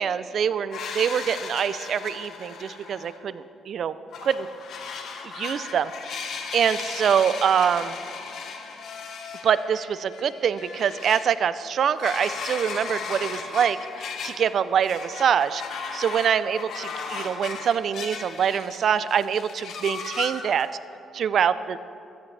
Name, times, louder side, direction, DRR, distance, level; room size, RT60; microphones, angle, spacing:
voice 1, 0.0-4.0 4.2-4.5 5.3-8.0 9.4-20.7 21.1-21.8, right 8 dB, 60° right, 15 dB, 0.4 m, -25 dB
sound 1, 0.7-3.2 4.1-11.2 11.8-14.5 14.8-18.8 19.1-20.7, left 5 dB, 70° left, 1.3 m, -36 dB
15.5 x 13.0 x 3.3 m, 2.6 s
cardioid pair, 90°, 0 cm